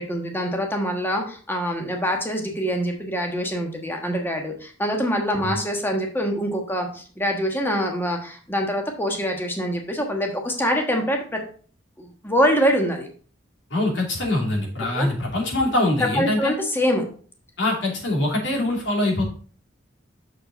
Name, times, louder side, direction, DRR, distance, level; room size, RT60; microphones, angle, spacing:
voice 1, 0.0-11.4 12.0-13.1 14.9-15.1 16.1-17.0, equal, 10° left, 2 dB, 1.3 m, -24 dB
voice 2, 13.7-16.5 17.6-19.2, left 1 dB, 70° left, 0 dB, 2.7 m, -23 dB
6.5 x 5.9 x 3.9 m, 0.43 s
head